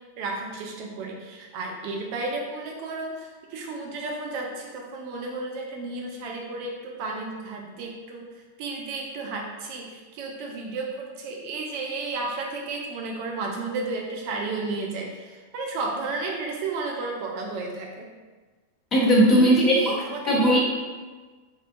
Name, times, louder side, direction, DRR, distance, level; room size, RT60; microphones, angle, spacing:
voice 1, 0.2-18.1 19.3-20.4, right 3 dB, 45° right, 0 dB, 0.4 m, -33 dB
voice 2, 18.9-19.8 20.3-20.6, equal, 25° left, -5 dB, 0.8 m, -18 dB
3.5 x 2.4 x 2.5 m, 1.4 s
figure-of-eight pair, 90°, 0 cm